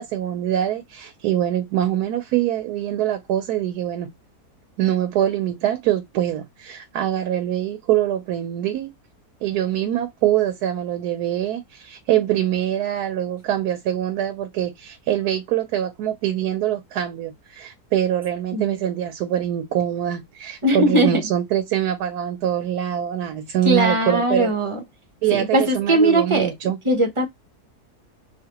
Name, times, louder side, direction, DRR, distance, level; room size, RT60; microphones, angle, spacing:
voice 1, 0.0-4.1 4.8-8.9 9.4-24.5 25.2-26.8, right 11 dB, 80° right, 1.1 m, -24 dB
voice 2, 20.6-21.2 23.6-24.8 25.3-26.5 26.8-27.3, right 1 dB, 25° right, 0.7 m, -19 dB
5.0 x 2.6 x 2.9 m
omnidirectional pair, 1.7 m